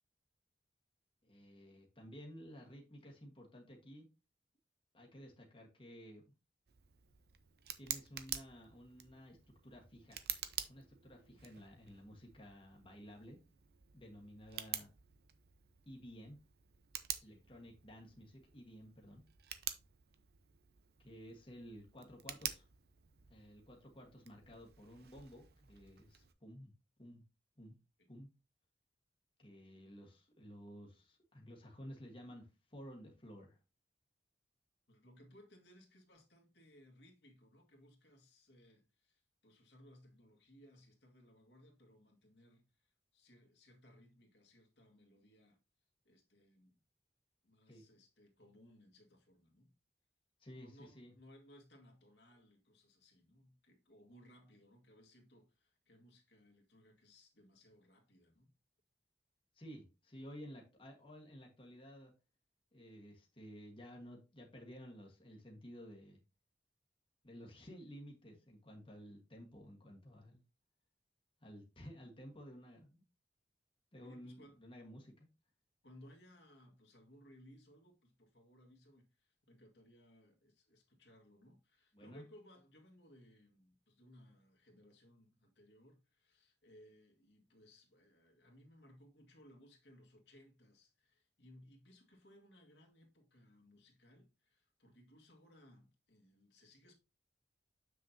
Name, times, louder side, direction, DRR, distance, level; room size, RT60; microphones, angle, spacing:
voice 1, 1.2-4.1 4.9-6.2 7.8-9.4 9.6-10.2 10.7-13.4 13.9-14.9 15.8-16.4 17.2-19.2 21.0-22.7 23.3-26.7 27.0-27.2 27.6-27.8 28.1-28.3 29.4-33.6 47.7-47.8 50.4-51.1 59.5-62.1 62.7-66.2 67.2-70.4 71.4-73.0 73.9-75.3 81.9-82.2, equal, 30° left, 1.5 m, -54 dB
Tick, 6.7-26.3, right 11 dB, 60° right, 0.7 m, -49 dB
voice 2, 34.9-45.6 46.0-46.8 47.4-49.7 50.6-58.5 74.0-74.6 75.8-96.9, equal, 75° left, 1.9 m, -63 dB
7.4 x 6.4 x 2.8 m
head